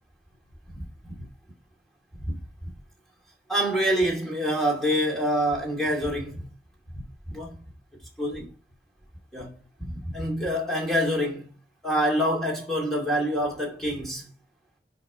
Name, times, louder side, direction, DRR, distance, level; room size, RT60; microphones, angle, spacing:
voice 1, 0.8-1.1 2.3-2.4 3.5-6.5 6.9-7.6 8.2-8.5 9.3-9.5 9.8-11.5 11.8-14.2, equal, ahead, 2.3 m, -26 dB
6.8 x 5.2 x 4.9 m
head